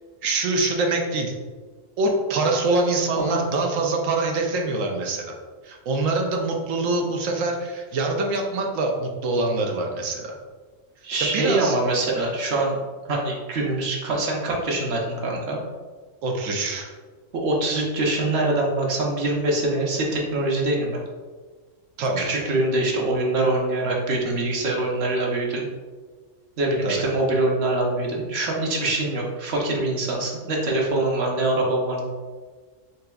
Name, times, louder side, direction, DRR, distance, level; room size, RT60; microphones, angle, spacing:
voice 1, 0.2-1.3 2.0-5.4 5.6-10.3 11.2-11.7 16.2-16.9 22.0-22.3 26.8-27.0, right 2 dB, 80° right, 2 dB, 1.1 m, -24 dB
voice 2, 11.0-12.8 13.1-15.6 17.3-21.0 22.2-25.7 26.6-32.0, right 2 dB, 55° right, -1 dB, 1.0 m, -24 dB
4.3 x 3.8 x 2.3 m, 1.4 s
omnidirectional pair, 1.4 m